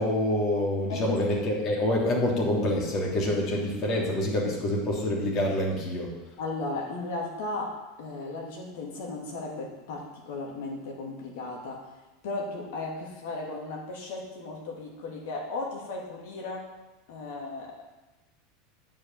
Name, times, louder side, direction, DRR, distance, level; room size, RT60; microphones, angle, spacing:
voice 1, 0.0-6.1, left 1 dB, 45° left, -3 dB, 3.3 m, -26 dB
voice 2, 6.4-11.8 12.2-16.6 17.1-17.8, left 3 dB, 70° left, -1 dB, 2.9 m, -35 dB
9.3 x 5.6 x 7.3 m, 1.1 s
hypercardioid pair, 100°, 0 cm